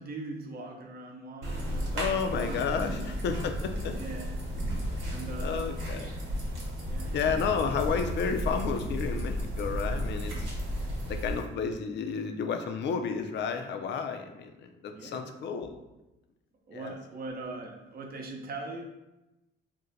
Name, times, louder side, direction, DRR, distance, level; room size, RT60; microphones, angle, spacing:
voice 1, 0.0-3.2 3.9-4.4 5.0-5.9 6.8-7.2 14.9-15.3 16.7-18.8, right 2 dB, 50° right, 2 dB, 0.6 m, -41 dB
sound 1, 1.4-11.4, equal, 85° right, 0.9 m, -33 dB
voice 2, 1.9-3.9 5.4-6.1 7.1-10.5 11.1-15.8 16.7-16.9, left 6 dB, 65° left, 6 dB, 0.4 m, -31 dB
2.6 x 2.1 x 3.9 m, 0.97 s
cardioid pair, 90°, 20 cm